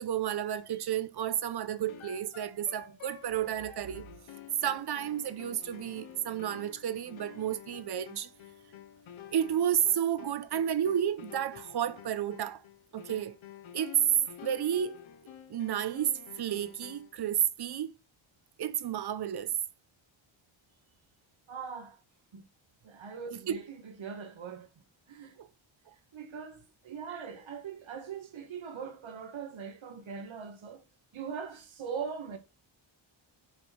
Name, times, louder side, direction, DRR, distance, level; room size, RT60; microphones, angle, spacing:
voice 1, 0.0-4.0 4.6-8.3 9.3-12.6 12.9-13.4 13.7-14.0 14.4-15.1 15.5-17.9 18.6-19.6 23.3-23.6 25.4-25.5, right 10 dB, 55° right, 0.8 m, -32 dB
sound 1, 1.9-17.2, left 9 dB, 75° left, 1.1 m, -50 dB
voice 2, 21.5-22.0 22.3-22.5 22.8-24.7 25.1-25.4 26.1-30.9 31.1-32.4, right 6 dB, 70° right, 2.2 m, -41 dB
7.5 x 5.2 x 4.6 m
wide cardioid pair, 180°, 48 cm